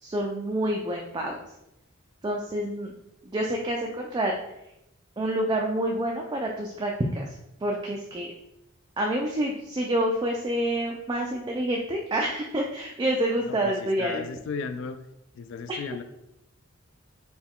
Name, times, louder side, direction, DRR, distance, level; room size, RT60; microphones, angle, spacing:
voice 1, 0.0-1.4 2.2-2.9 3.3-4.3 5.2-7.3 7.6-8.3 9.0-14.2, right 1 dB, 20° right, 0 dB, 0.3 m, -28 dB
voice 2, 13.5-15.0 15.3-16.0, left 5 dB, 60° left, 10 dB, 0.3 m, -35 dB
4.3 x 2.2 x 3.6 m, 0.85 s
head